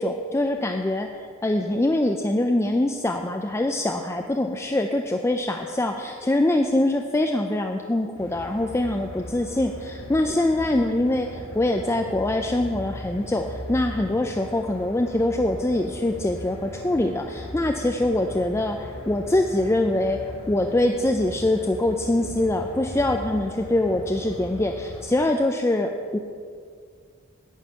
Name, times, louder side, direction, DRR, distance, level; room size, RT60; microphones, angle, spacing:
voice 1, 0.0-20.2 20.5-26.2, left 1 dB, 15° left, 4 dB, 0.4 m, -24 dB
sound 1, 8.1-25.0, left 1 dB, 90° left, 3.0 m, -38 dB
11.0 x 5.3 x 8.5 m, 2.1 s
head